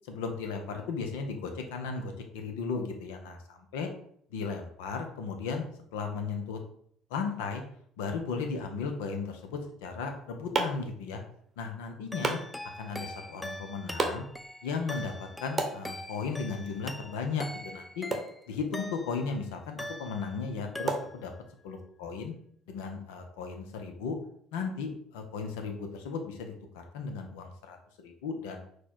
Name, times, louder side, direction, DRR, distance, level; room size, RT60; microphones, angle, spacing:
voice 1, 0.1-3.9 4.3-5.7 5.9-6.6 7.1-7.6 8.0-11.2 11.6-12.4 12.8-14.2 14.6-18.1 18.5-21.3 21.6-22.3 22.7-24.2 24.5-28.6, left 5 dB, 70° left, 5 dB, 0.6 m, -35 dB
sound 1, 9.9-21.8, right 3 dB, 30° right, 0.8 m, -39 dB
sound 2, 12.1-19.4 19.8-20.5 20.8-21.4, left 1 dB, 10° left, 0.3 m, -43 dB
4.2 x 2.2 x 4.4 m, 0.66 s
figure-of-eight pair, 55°, 0 cm